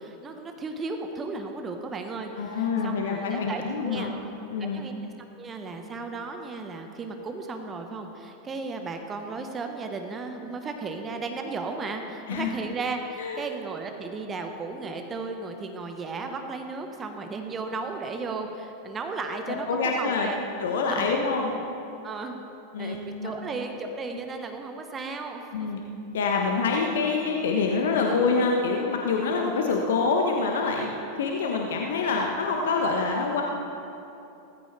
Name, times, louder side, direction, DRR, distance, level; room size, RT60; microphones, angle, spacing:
voice 1, 0.0-4.1 4.6-20.4 20.9-21.1 22.0-22.4 22.8-25.8, right 3 dB, 25° right, 4 dB, 1.2 m, -35 dB
voice 2, 2.4-4.1 4.5-4.8 12.3-12.5 13.2-13.4 19.7-20.3 20.6-21.6 22.7-23.4 25.5-25.8 26.1-30.9 31.1-33.4, left 4 dB, 65° left, 1 dB, 1.2 m, -26 dB
17.5 x 14.5 x 3.4 m, 2.9 s
figure-of-eight pair, 85°, 0 cm